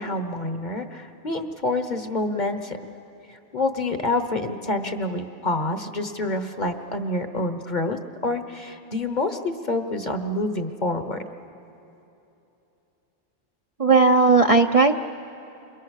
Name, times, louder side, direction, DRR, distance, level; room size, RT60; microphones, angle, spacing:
voice 1, 0.0-2.8 3.3-11.2, left 2 dB, 40° left, 8 dB, 1.2 m, -27 dB
voice 2, 13.8-15.0, right 4 dB, 35° right, 4 dB, 0.6 m, -16 dB
30.0 x 27.5 x 6.5 m, 3.0 s
omnidirectional pair, 1.2 m